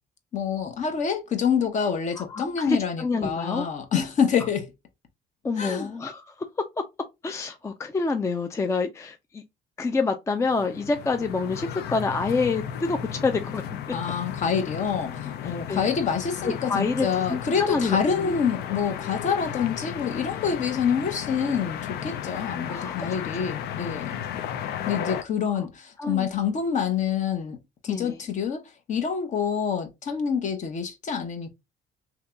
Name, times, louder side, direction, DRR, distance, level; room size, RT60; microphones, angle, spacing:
voice 1, 0.3-4.7 5.6-5.9 13.9-24.3 24.9-27.6 27.8-28.6 28.9-31.5, left 7 dB, 45° left, 0.9 m, -27 dB
voice 2, 2.2-3.7 5.4-6.3 7.2-9.4 9.8-13.6 15.4-15.9 16.4-18.4 22.7-22.9 26.0-26.3 27.9-28.2, left 4 dB, 15° left, 0.4 m, -27 dB
sound 1, 10.4-25.2, left 9 dB, 75° left, 0.5 m, -34 dB
2.9 x 2.8 x 3.3 m
cardioid pair, 110°, 17 cm